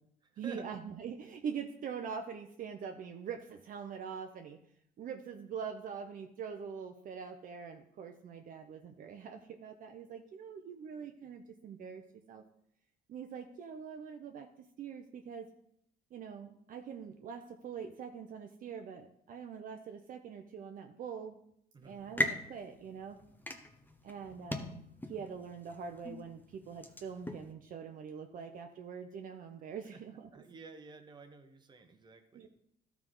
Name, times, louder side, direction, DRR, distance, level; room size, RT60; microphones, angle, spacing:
voice 1, 0.4-4.6 5.0-12.0 12.3-12.4 13.1-15.5 16.1-21.4 21.8-23.2 24.0-24.8 25.1-30.4 32.3-32.5, right 6 dB, 55° right, 5 dB, 0.7 m, -44 dB
voice 2, 21.7-22.1 29.9-30.0 30.3-32.5, right 4 dB, 25° right, 6 dB, 1.0 m, -51 dB
sound 1, 21.8-27.5, left 1 dB, 10° left, 0.8 m, -40 dB
12.5 x 4.7 x 3.8 m, 0.71 s
cardioid pair, 110°, 17 cm